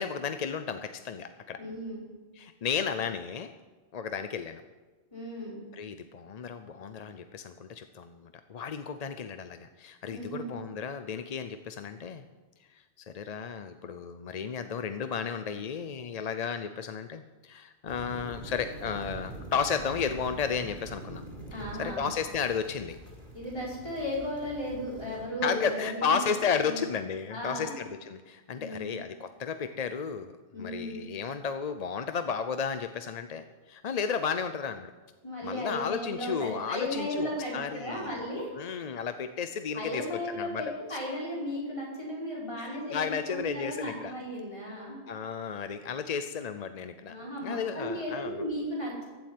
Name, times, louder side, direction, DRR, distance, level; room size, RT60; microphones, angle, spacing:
voice 1, 0.0-1.6 2.4-3.5 3.9-4.6 5.7-12.2 12.7-21.2 21.5-23.0 25.4-30.3 30.6-34.9 35.4-38.2 38.5-40.6 40.9-41.0 42.6-44.1 45.1-47.2 47.4-48.4, left 6 dB, 45° left, 9 dB, 0.6 m, -33 dB
voice 2, 1.6-2.0 5.1-5.6 10.1-10.5 21.5-22.1 23.3-26.1 26.7-26.8 27.3-27.8 28.6-29.0 30.5-31.1 35.2-38.5 39.7-45.0 47.1-49.0, equal, 30° left, -6 dB, 5.3 m, -35 dB
sound 1, 17.9-25.3, right 1 dB, 45° right, 4.2 m, -44 dB
15.5 x 7.5 x 9.1 m, 1.3 s
omnidirectional pair, 1.1 m